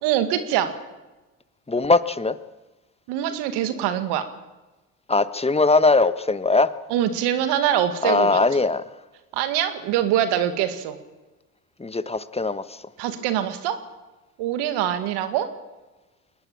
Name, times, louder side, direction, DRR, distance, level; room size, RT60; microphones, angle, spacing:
voice 1, 0.0-0.7 3.1-4.2 6.9-8.4 9.3-11.0 13.0-13.8 14.4-15.5, right 10 dB, 80° right, 9 dB, 2.2 m, -24 dB
voice 2, 1.7-2.3 5.1-6.7 8.0-8.8 11.8-12.6, left 3 dB, 15° left, 14 dB, 1.4 m, -20 dB
22.0 x 19.5 x 8.8 m, 1.1 s
supercardioid pair, 65°, 40 cm